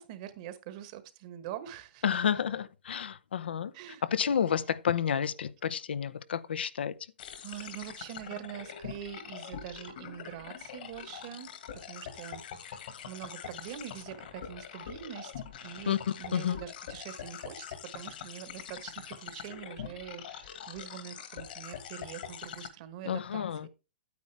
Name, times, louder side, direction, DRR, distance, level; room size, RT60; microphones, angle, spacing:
voice 1, 0.0-2.0 3.7-4.0 7.4-15.3 15.6-23.7, right 11 dB, 40° right, 1.3 m, -44 dB
voice 2, 2.0-3.7 4.0-7.0 15.9-16.0 16.3-16.6 23.0-23.7, left 8 dB, 85° left, 0.7 m, -30 dB
sound 1, 7.2-22.7, left 8 dB, 60° left, 1.8 m, -44 dB
9.4 x 8.3 x 3.3 m
hypercardioid pair, 150°, 6 cm